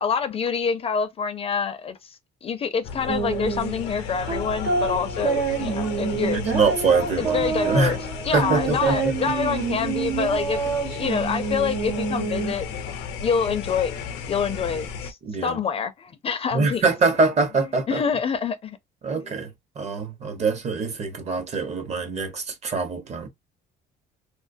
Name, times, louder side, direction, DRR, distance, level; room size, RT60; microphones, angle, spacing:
voice 1, 0.0-2.0 2.4-6.4 7.2-8.0 8.2-12.7 13.2-13.9 14.3-15.2 15.4-16.9 17.9-18.8 19.1-19.2, left 6 dB, 35° left, 0.4 m, -26 dB
sound 1, 2.8-15.1, left 6 dB, 90° left, 0.5 m, -34 dB
sound 2, 3.1-12.8, right 5 dB, 85° right, 1.1 m, -27 dB
voice 2, 6.3-8.0 8.3-9.2 15.2-15.6 16.5-18.0 19.0-19.5 19.8-23.3, right 4 dB, 40° right, 0.8 m, -24 dB
2.3 x 2.2 x 2.5 m
cardioid pair, 110°, 17 cm